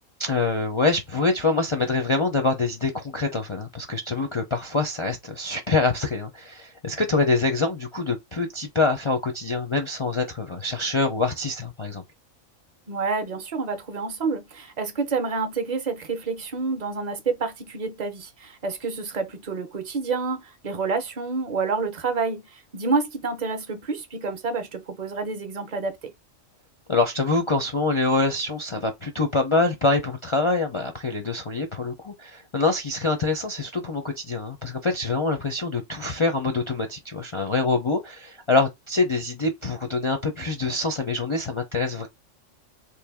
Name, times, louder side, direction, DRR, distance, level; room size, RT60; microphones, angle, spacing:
voice 1, 0.2-12.0 26.9-42.1, left 3 dB, 45° left, 0.4 m, -25 dB
voice 2, 12.9-26.1, right 4 dB, 45° right, 0.6 m, -28 dB
3.2 x 2.7 x 3.5 m
omnidirectional pair, 1.3 m